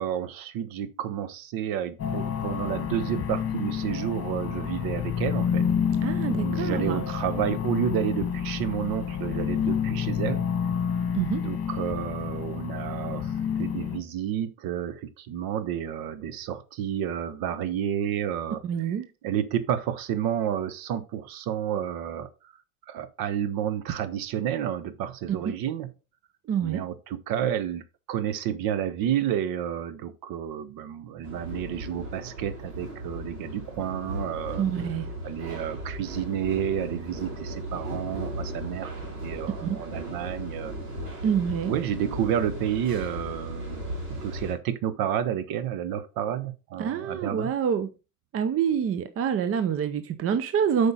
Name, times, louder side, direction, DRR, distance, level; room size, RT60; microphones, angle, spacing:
voice 1, 0.0-5.7 6.4-10.4 11.4-19.0 19.2-22.3 22.9-25.9 26.6-34.6 35.2-38.9 39.2-40.7 41.7-43.8 44.2-47.5, right 10 dB, 50° right, 1.1 m, -30 dB
sound 1, 2.0-14.0, left 8 dB, 30° left, 1.5 m, -29 dB
voice 2, 6.0-7.0 11.1-11.4 18.6-19.1 25.3-25.6 26.5-26.8 34.5-35.1 39.6-39.8 41.2-41.7 46.8-47.9 48.3-50.9, right 7 dB, 30° right, 0.7 m, -26 dB
sound 2, 31.2-44.5, right 1 dB, 80° right, 3.6 m, -36 dB
7.9 x 5.2 x 3.8 m
hypercardioid pair, 75°, 45 cm